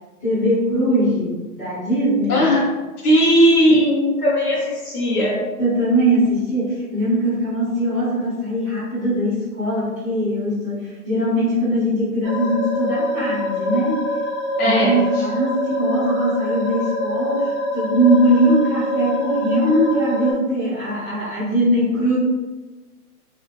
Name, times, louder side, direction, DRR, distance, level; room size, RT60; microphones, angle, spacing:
voice 1, 0.2-2.5 5.6-14.1 14.6-22.2, right 1 dB, 15° left, -13 dB, 0.8 m, -21 dB
voice 2, 2.3-2.6 3.0-5.5 14.6-15.2, equal, 70° left, -6 dB, 1.0 m, -17 dB
sound 1, 12.2-20.3, left 1 dB, 40° right, 0.6 m, -24 dB
2.9 x 2.2 x 2.5 m, 1.2 s
hypercardioid pair, 155°, 46 cm